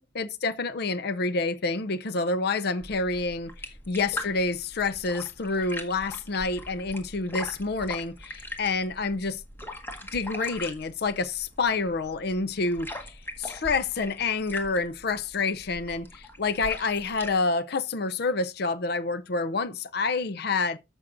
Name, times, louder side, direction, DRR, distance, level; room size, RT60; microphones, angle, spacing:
voice 1, 0.0-9.4 10.1-20.8, left 3 dB, 55° left, 0.5 m, -28 dB
sound 1, 2.8-17.4, left 1 dB, 10° left, 1.5 m, -41 dB
14.5 x 6.2 x 2.5 m
head